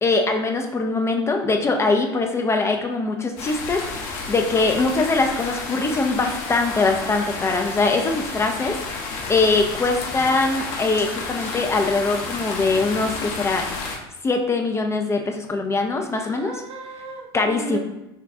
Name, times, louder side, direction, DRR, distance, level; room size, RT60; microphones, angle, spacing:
voice 1, 0.0-8.8 9.3-13.7 14.2-16.6 17.3-17.8, left 3 dB, 20° left, 3 dB, 0.4 m, -22 dB
sound 1, 3.4-14.0, left 3 dB, 60° left, 0.8 m, -31 dB
voice 2, 16.1-17.8, right 5 dB, 45° right, 2 dB, 0.7 m, -36 dB
3.7 x 2.2 x 3.4 m, 0.95 s
hypercardioid pair, 80°, 14 cm